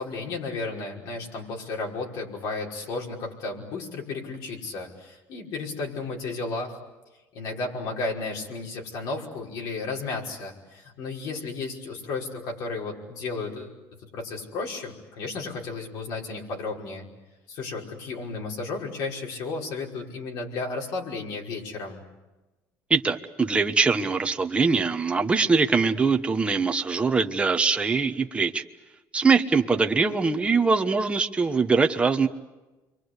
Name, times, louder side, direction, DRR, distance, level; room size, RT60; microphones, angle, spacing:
voice 1, 0.0-6.8 7.3-13.7 14.1-17.1 17.5-22.0, left 3 dB, 65° left, -1 dB, 5.4 m, -33 dB
voice 2, 22.9-28.6 29.1-32.3, right 4 dB, 15° right, 6 dB, 1.2 m, -22 dB
29.5 x 23.5 x 8.2 m, 1.1 s
cardioid pair, 130°, 7 cm